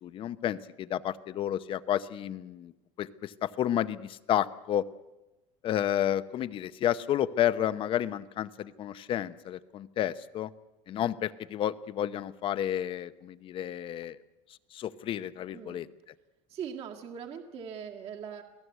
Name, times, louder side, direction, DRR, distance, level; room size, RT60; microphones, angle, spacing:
voice 1, 0.0-2.7 3.0-4.8 5.6-10.5 10.9-14.2 14.7-15.9, left 11 dB, 35° left, 15 dB, 0.8 m, -31 dB
voice 2, 15.5-15.8 16.5-18.4, right 7 dB, 40° right, 2 dB, 1.8 m, -40 dB
27.5 x 17.5 x 8.2 m, 1.1 s
cardioid pair, 165°, 15 cm